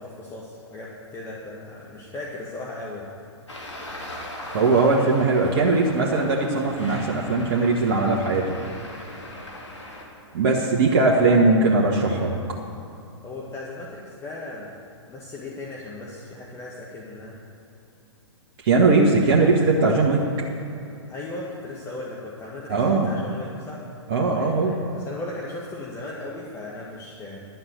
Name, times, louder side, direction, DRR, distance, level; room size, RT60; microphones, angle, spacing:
voice 1, 0.0-3.1 11.1-11.4 13.2-14.7 15.1-17.4 21.1-23.8 24.4-27.4, left 2 dB, 20° left, -4 dB, 1.8 m, -37 dB
Traffic noise roadway noise, 3.5-10.0, left 1 dB, 80° left, 2.9 m, -39 dB
voice 2, 4.5-8.6 10.3-12.4 18.6-20.2 22.7-23.1 24.1-24.8, right 3 dB, 45° right, -2 dB, 1.7 m, -20 dB
12.0 x 7.8 x 8.0 m, 2.7 s
figure-of-eight pair, 115°, 15 cm